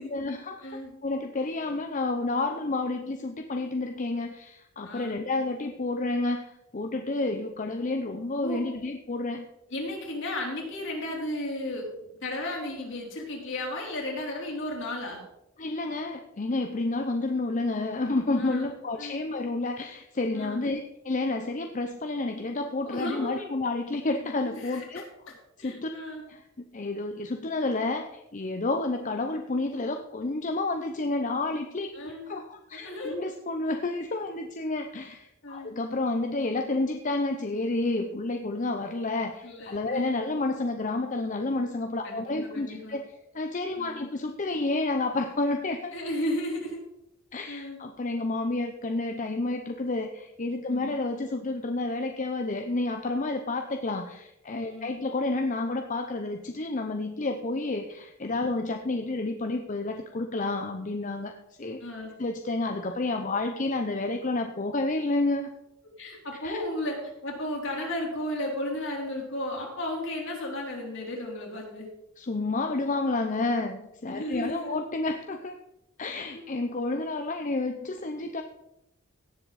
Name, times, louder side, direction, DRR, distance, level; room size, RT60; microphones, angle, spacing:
voice 1, 0.1-0.7 1.0-9.5 15.6-25.0 25.6-25.9 26.3-26.4 26.7-43.0 43.3-45.9 47.3-61.3 61.6-61.8 62.2-65.5 66.4-66.6 72.2-75.6 76.0-78.4, left 2 dB, 35° left, 5 dB, 0.6 m, -30 dB
voice 2, 4.8-5.2 8.4-8.6 9.7-11.9 12.2-15.2 18.3-18.7 19.0-19.2 20.3-20.6 22.8-23.4 24.4-26.2 31.9-32.3 32.7-33.2 35.4-35.7 39.4-40.3 42.0-42.2 42.5-43.0 43.8-44.1 45.9-46.8 47.5-47.8 50.7-51.0 54.7-54.9 61.8-62.1 66.0-71.9 74.1-74.7 76.3-76.4, left 1 dB, 60° left, -1 dB, 3.4 m, -34 dB
17.0 x 7.4 x 4.1 m, 0.86 s
head